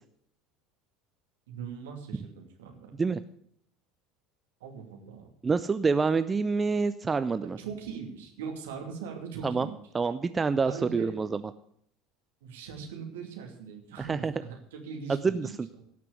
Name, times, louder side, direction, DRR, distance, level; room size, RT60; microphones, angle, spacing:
voice 1, 1.5-3.0 4.6-5.3 7.4-9.7 10.6-11.2 12.4-15.9, right 6 dB, 65° right, 2 dB, 2.7 m, -41 dB
voice 2, 5.4-7.6 9.4-9.7 9.9-11.4 14.0-14.3 15.2-15.5, right 4 dB, 20° right, 12 dB, 0.6 m, -27 dB
17.5 x 6.0 x 8.3 m, 0.67 s
figure-of-eight pair, 70°, 0 cm